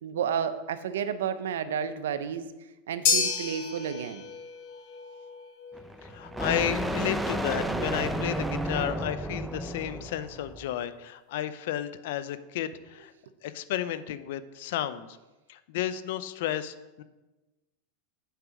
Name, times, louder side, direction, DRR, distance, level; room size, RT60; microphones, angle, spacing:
voice 1, 0.0-2.5 2.9-4.3, right 8 dB, 90° right, 12 dB, 0.6 m, -31 dB
sound 1, 3.1-11.4, left 5 dB, 55° left, 1.6 m, -34 dB
sound 2, 5.7-10.7, right 1 dB, 5° right, 0.6 m, -32 dB
voice 2, 6.0-13.1 13.4-15.1 15.5-17.0, left 11 dB, 70° left, 14 dB, 0.6 m, -32 dB
8.0 x 4.9 x 6.3 m, 1.1 s
supercardioid pair, 125°, 0 cm